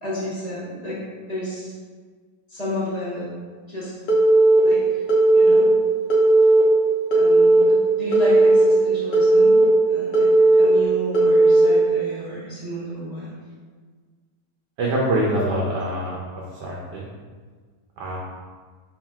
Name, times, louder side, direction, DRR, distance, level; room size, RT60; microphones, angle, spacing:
voice 1, 0.0-1.0 1.3-1.7 2.5-3.3 3.7-3.9 4.6-5.0 5.3-5.7 7.1-9.6 9.9-13.3, equal, 30° left, -9 dB, 0.8 m, -31 dB
Telephone, 4.1-4.6 5.1-5.6 6.1-6.6 7.1-7.6 8.1-8.6 9.1-9.6 10.1-10.6 11.1-11.7, right 2 dB, 65° left, 0.6 m, -15 dB
voice 2, 14.8-16.2 16.6-17.1 18.0-18.2, right 1 dB, 80° right, -4 dB, 1.2 m, -24 dB
4.5 x 3.1 x 2.3 m, 1.5 s
omnidirectional pair, 1.8 m